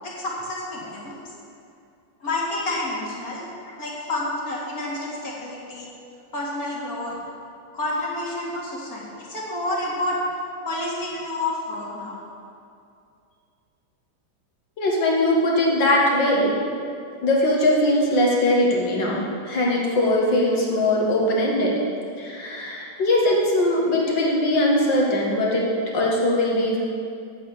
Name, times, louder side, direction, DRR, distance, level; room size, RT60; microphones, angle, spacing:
voice 1, 0.0-1.2 2.2-3.5 3.8-5.9 6.3-7.2 7.7-10.2 10.6-12.2, left 2 dB, 50° left, -4 dB, 2.7 m, -29 dB
voice 2, 14.8-16.6 17.2-21.7 22.2-25.7 25.9-26.8, left 1 dB, 70° left, -3 dB, 2.6 m, -21 dB
8.6 x 8.0 x 8.3 m, 2.5 s
omnidirectional pair, 2.0 m